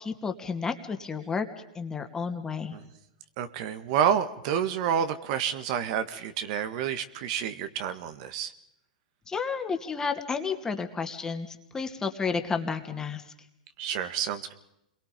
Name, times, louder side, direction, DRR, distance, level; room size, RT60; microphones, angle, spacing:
voice 1, 0.0-1.5 1.7-2.8 9.3-13.2, left 5 dB, 15° left, 6 dB, 2.4 m, -31 dB
voice 2, 3.4-8.5 13.8-14.5, right 8 dB, 50° right, 10 dB, 1.8 m, -29 dB
27.5 x 22.5 x 5.3 m, 0.81 s
hypercardioid pair, 125°, 4 cm